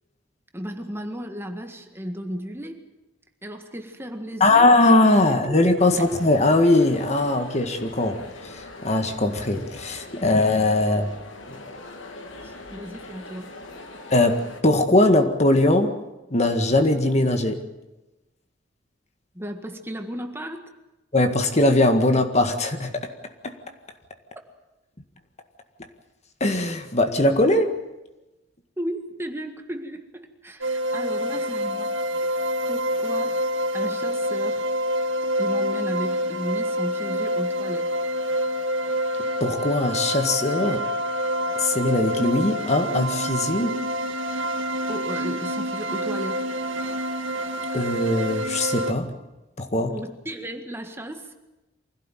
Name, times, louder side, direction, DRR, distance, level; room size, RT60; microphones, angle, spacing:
voice 1, 0.5-2.8 3.4-4.7 5.5-5.8 12.4-13.5 19.3-20.7 28.8-31.9 32.6-33.4 33.7-34.7 35.4-37.9 44.9-46.4 49.9-51.3, equal, 10° right, 5 dB, 1.7 m, -34 dB
voice 2, 4.4-11.1 14.1-16.0 16.3-17.6 21.1-23.1 23.4-23.6 26.4-27.7 39.4-40.8 41.6-43.8 47.7-49.1 49.6-49.9, left 2 dB, 35° left, 6 dB, 1.8 m, -20 dB
sound 1, 5.8-14.6, left 2 dB, 85° left, 2.8 m, -42 dB
sound 2, 30.6-48.9, equal, 80° right, 1.8 m, -27 dB
24.5 x 16.5 x 9.2 m, 1.0 s
head